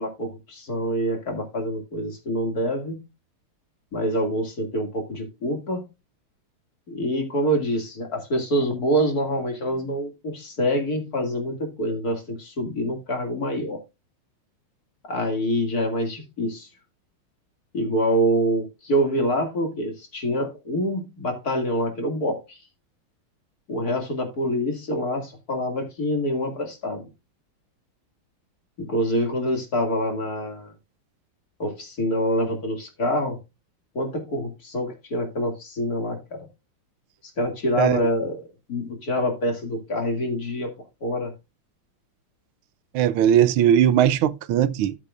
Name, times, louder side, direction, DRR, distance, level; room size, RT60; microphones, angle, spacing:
voice 1, 0.0-3.0 3.9-5.9 6.9-13.8 15.0-16.7 17.7-22.6 23.7-27.1 28.8-30.7 31.6-33.4 33.9-36.5 37.4-38.4 38.7-40.7 41.0-41.3, equal, 45° left, 2.7 m, -26 dB
voice 2, 42.9-44.9, right 10 dB, 85° right, 1.6 m, -19 dB
13.5 x 7.6 x 2.4 m
omnidirectional pair, 2.3 m